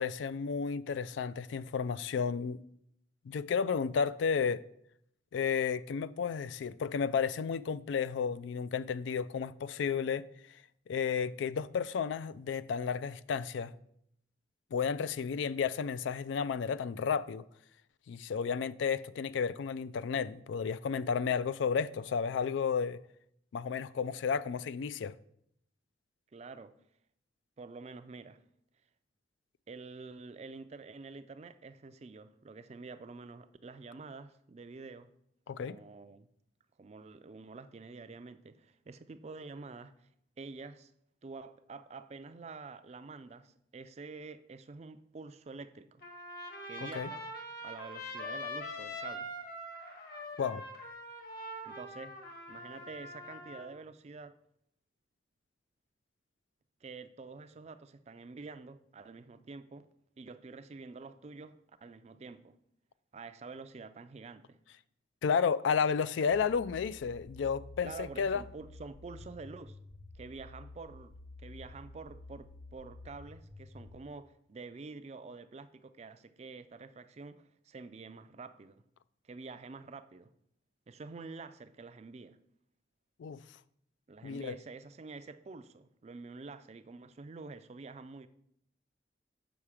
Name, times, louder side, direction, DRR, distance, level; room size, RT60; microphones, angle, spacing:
voice 1, 0.0-2.6 3.3-4.6 5.3-10.2 10.9-13.7 14.7-17.5 18.1-23.0 23.5-25.2 35.5-35.8 46.8-47.1 50.4-50.6 65.2-68.4 83.2-83.4 84.2-84.6, left 6 dB, 75° left, 0.3 m, -32 dB
voice 2, 26.3-26.7 27.6-28.4 29.7-35.1 35.5-36.3 36.8-40.1 40.4-40.9 41.2-46.0 46.7-47.2 47.6-49.3 51.6-52.2 52.5-54.4 56.8-59.9 60.2-62.6 63.1-64.6 67.8-69.8 70.1-78.8 79.2-80.3 80.9-82.4 84.1-88.3, right 4 dB, 35° right, 0.4 m, -48 dB
Trumpet, 46.0-53.7, left 1 dB, 55° left, 1.5 m, -43 dB
sound 1, 66.3-74.0, left 2 dB, 35° left, 0.9 m, -51 dB
7.2 x 5.7 x 4.8 m
head